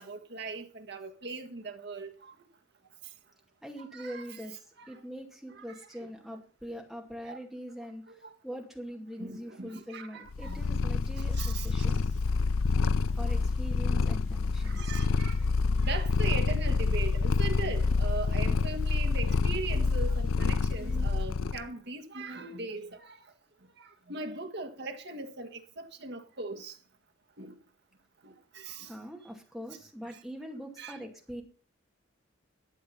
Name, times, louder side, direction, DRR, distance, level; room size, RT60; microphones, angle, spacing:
voice 1, 0.0-2.3 3.9-4.4 4.8-4.9 5.5-5.9 7.2-7.4 8.1-8.3 9.2-10.6 11.2-11.8 13.3-13.4 14.6-15.4 15.8-23.2 24.1-26.7 27.4-27.5 28.2-28.9 30.8-31.0, right 3 dB, 50° right, 1.6 m, -39 dB
voice 2, 3.6-12.1 13.2-15.0 18.3-18.4 28.8-31.4, equal, ahead, 2.3 m, -43 dB
Purr, 10.3-21.6, left 4 dB, 75° left, 0.6 m, -27 dB
12.0 x 8.5 x 5.6 m
head